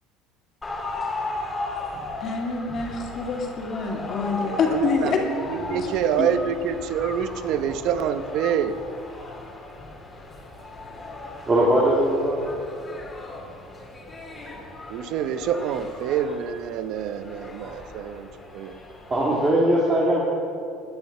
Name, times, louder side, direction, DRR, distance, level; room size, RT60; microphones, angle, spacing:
sound 1, 0.6-19.5, left 2 dB, 15° left, 2.5 m, -37 dB
voice 1, 2.2-5.2 5.7-5.9 6.2-6.3, left 5 dB, 40° left, 1 dB, 2.5 m, -26 dB
voice 2, 4.5-5.3 5.6-8.8 14.9-18.3 18.5-18.8, right 8 dB, 60° right, 11 dB, 0.9 m, -26 dB
voice 3, 11.5-12.4 19.1-20.2, right 1 dB, 20° right, -5 dB, 2.5 m, -20 dB
16.0 x 10.5 x 6.8 m, 2.5 s
cardioid pair, 130°, 0 cm